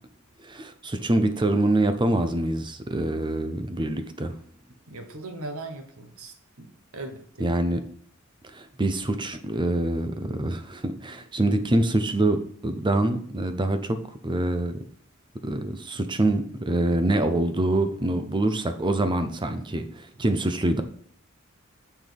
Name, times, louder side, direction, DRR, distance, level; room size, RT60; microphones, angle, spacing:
voice 1, 0.4-4.4 7.4-7.8 8.5-14.0 14.2-14.7 15.4-20.8, right 1 dB, 20° right, 8 dB, 0.6 m, -25 dB
voice 2, 4.9-7.5, right 2 dB, 75° right, 5 dB, 1.3 m, -39 dB
7.1 x 6.1 x 3.5 m, 0.62 s
head